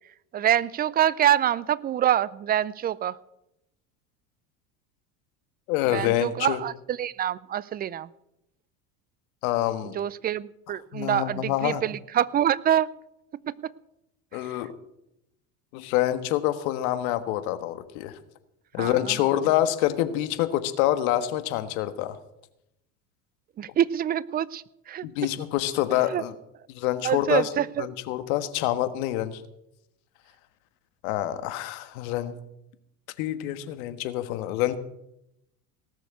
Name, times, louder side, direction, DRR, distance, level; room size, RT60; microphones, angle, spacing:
voice 1, 0.3-3.2 5.9-8.1 9.9-12.9 13.5-13.7 14.3-14.5 18.8-19.2 23.6-25.0 26.1-26.2 27.0-27.9, right 10 dB, 20° right, 21 dB, 0.4 m, -26 dB
voice 2, 5.7-6.6 9.4-9.9 10.9-11.8 14.3-14.7 15.7-18.2 18.7-22.2 25.0-26.3 26.7-27.5 27.8-29.4 31.0-32.4 33.2-34.8, left 13 dB, 65° left, 11 dB, 1.5 m, -26 dB
18.5 x 6.6 x 8.2 m, 0.84 s
hypercardioid pair, 85°, 45 cm